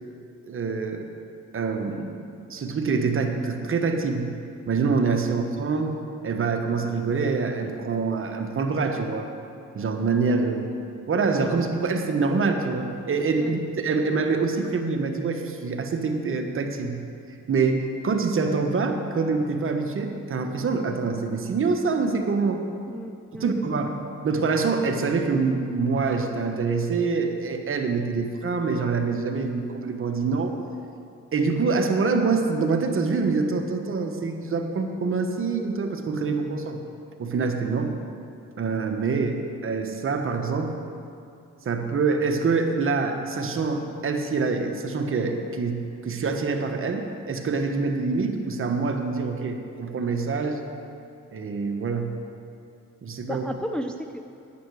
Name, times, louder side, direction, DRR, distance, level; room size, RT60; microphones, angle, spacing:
voice 1, 0.5-1.1 1.5-2.1 2.5-4.3 4.7-9.3 9.7-10.7 11.1-17.0 17.5-22.6 23.4-23.9 24.2-30.6 31.3-36.8 37.2-37.9 38.6-40.8 41.6-50.6 51.3-52.1 53.0-53.4, right 4 dB, 45° right, 4 dB, 1.3 m, -25 dB
voice 2, 22.9-23.9 53.3-54.2, equal, 5° left, 5 dB, 0.5 m, -34 dB
10.0 x 9.4 x 6.3 m, 2.5 s
cardioid pair, 90°, 30 cm